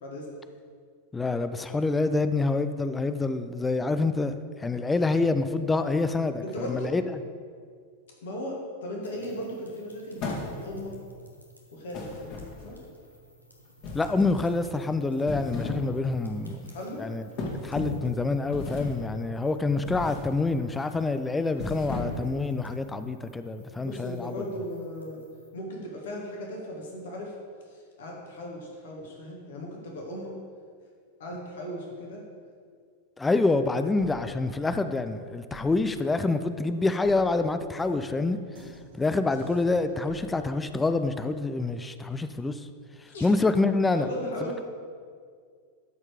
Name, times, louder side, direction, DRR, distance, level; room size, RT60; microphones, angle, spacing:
voice 1, 1.1-7.0 13.9-16.7 17.0-17.3 17.6-24.3 33.2-38.4 39.0-42.6 43.2-44.1, left 3 dB, 10° left, 10 dB, 0.4 m, -26 dB
voice 2, 6.4-6.9 8.2-11.0 11.7-12.4 12.6-12.8 16.6-17.0 23.8-25.2 25.5-27.3 27.7-30.3 31.2-32.2 43.1-43.3 43.9-44.7, equal, 60° left, -2 dB, 1.8 m, -37 dB
sound 1, 9.0-25.5, equal, 85° left, 1.2 m, -53 dB
sound 2, 10.2-10.9 11.9-12.8 13.8-14.5 15.1-15.9 16.3-16.5 17.4-18.1 18.5-19.1 19.8-20.3 20.7-21.0 21.5-22.4, left 3 dB, 45° left, 2.0 m, -35 dB
sound 3, 33.7-35.1 35.5-40.6, right 2 dB, 65° right, 1.3 m, -50 dB
13.0 x 4.6 x 5.0 m, 2.1 s
figure-of-eight pair, 90°, 0 cm